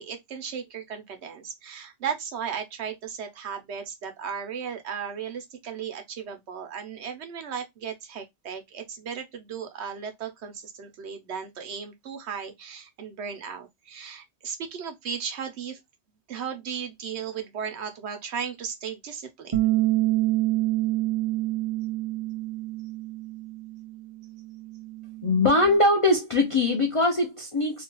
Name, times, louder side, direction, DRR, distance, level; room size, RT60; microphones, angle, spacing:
voice 1, 0.0-15.8 16.3-19.6, right 7 dB, 70° right, 1.0 m, -36 dB
Bass guitar, 19.5-25.8, right 16 dB, 55° right, 0.3 m, -28 dB
voice 2, 25.2-27.8, left 2 dB, 45° left, 0.4 m, -22 dB
2.8 x 2.3 x 2.9 m
omnidirectional pair, 1.2 m